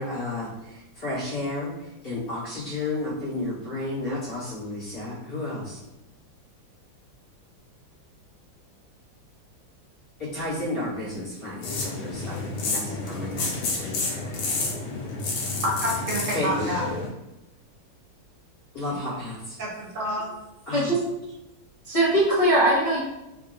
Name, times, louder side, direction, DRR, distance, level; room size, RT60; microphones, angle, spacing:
voice 1, 0.0-5.8 10.2-13.9 16.3-16.5 18.7-19.6 20.7-21.0, left 2 dB, 50° left, -11 dB, 2.0 m, -32 dB
sound 1, 11.6-17.1, left 3 dB, 90° left, 1.6 m, -30 dB
voice 2, 15.4-16.9 18.9-19.0 19.6-20.3, equal, 55° right, -3 dB, 0.9 m, -29 dB
voice 3, 21.8-23.0, right 1 dB, 20° left, -10 dB, 1.1 m, -20 dB
4.5 x 2.6 x 2.5 m, 0.94 s
omnidirectional pair, 2.1 m